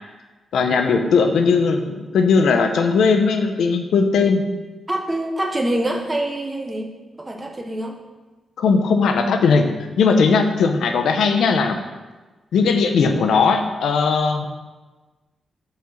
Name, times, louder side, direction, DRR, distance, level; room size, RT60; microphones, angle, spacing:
voice 1, 0.5-4.4 8.6-9.7 10.0-11.8 12.5-14.4, left 5 dB, 85° left, 6 dB, 0.7 m, -18 dB
voice 2, 4.9-6.9 7.2-8.0, right 1 dB, 15° right, 2 dB, 0.9 m, -25 dB
5.8 x 4.3 x 6.3 m, 1.2 s
wide cardioid pair, 145°, 0 cm